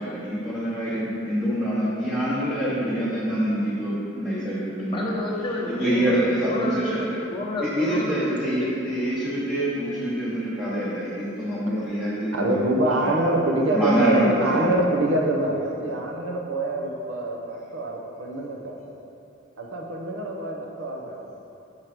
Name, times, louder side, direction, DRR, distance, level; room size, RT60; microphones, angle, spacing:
voice 1, 0.0-5.0 5.7-7.2 7.6-12.5 13.0-13.1 13.7-14.7, right 1 dB, 5° right, -11 dB, 0.8 m, -26 dB
voice 2, 4.9-8.7 9.1-9.2, left 1 dB, 25° left, -4 dB, 0.9 m, -30 dB
voice 3, 12.3-18.8 19.6-21.2, right 1 dB, 80° right, 1 dB, 0.8 m, -25 dB
5.7 x 4.5 x 4.9 m, 2.9 s
head